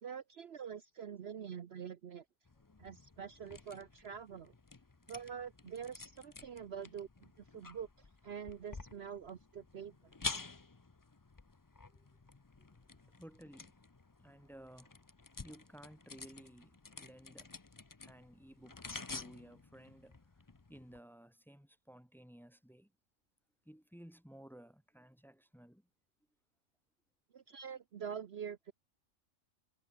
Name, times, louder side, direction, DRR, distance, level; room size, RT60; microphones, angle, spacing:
voice 1, 0.0-2.2 2.8-4.5 5.1-10.1 27.3-28.7, right 7 dB, 55° right, 1.0 m, -46 dB
sound 1, 2.4-21.0, left 3 dB, 20° left, 0.5 m, -50 dB
voice 2, 13.2-13.7 14.2-15.0 15.4-17.5 18.0-18.8 19.1-20.2 20.7-22.9 23.7-25.9, equal, ahead, 1.7 m, -56 dB
omnidirectional pair, 1.4 m